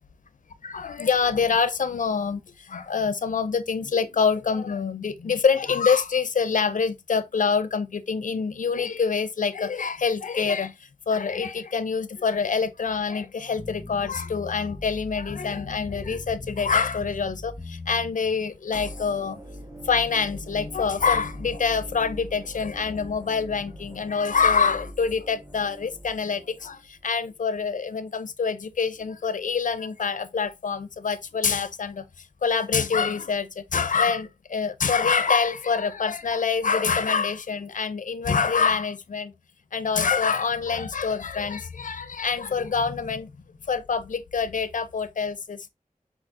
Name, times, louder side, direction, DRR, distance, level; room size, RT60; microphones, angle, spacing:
voice 1, 0.6-19.4 19.8-32.1 32.4-39.3 39.7-43.3 43.7-45.7, left 5 dB, 65° left, 0.5 m, -26 dB
sound 1, 13.6-18.1, left 2 dB, 25° left, 0.8 m, -39 dB
sound 2, 18.7-26.8, equal, 25° right, 1.1 m, -42 dB
4.6 x 4.0 x 2.6 m
wide cardioid pair, 80°, 14 cm